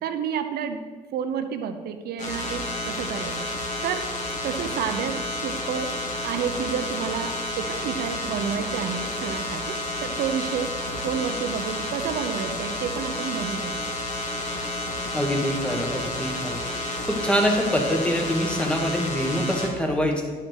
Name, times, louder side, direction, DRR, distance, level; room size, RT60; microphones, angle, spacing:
voice 1, 0.0-0.8 1.1-4.1 4.4-6.0 6.2-13.7, right 7 dB, 70° right, 8 dB, 0.8 m, -30 dB
sound 1, 2.2-19.7, left 1 dB, 45° left, 1.8 m, -31 dB
voice 2, 15.1-16.6 17.0-20.2, equal, 5° left, 1 dB, 1.5 m, -24 dB
11.0 x 5.8 x 4.6 m, 1.5 s
cardioid pair, 110°, 17 cm